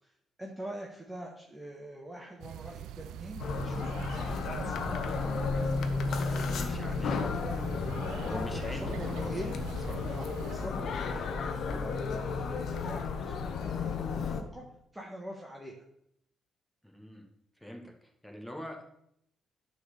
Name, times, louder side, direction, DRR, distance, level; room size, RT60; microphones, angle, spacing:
voice 1, 0.0-5.7 6.2-7.7 8.0-9.5 10.1-11.9 12.3-14.6 14.9-15.8, right 1 dB, 10° right, -1 dB, 1.5 m, -44 dB
sound 1, 2.4-10.7, right 11 dB, 85° right, 0.3 m, -43 dB
sound 2, 3.4-14.4, left 4 dB, 65° left, 1.0 m, -33 dB
voice 2, 6.4-7.2 8.3-10.0 16.8-17.3 17.6-18.9, equal, 5° left, 2 dB, 1.9 m, -44 dB
9.2 x 4.5 x 6.9 m, 0.74 s
cardioid pair, 90°, 0 cm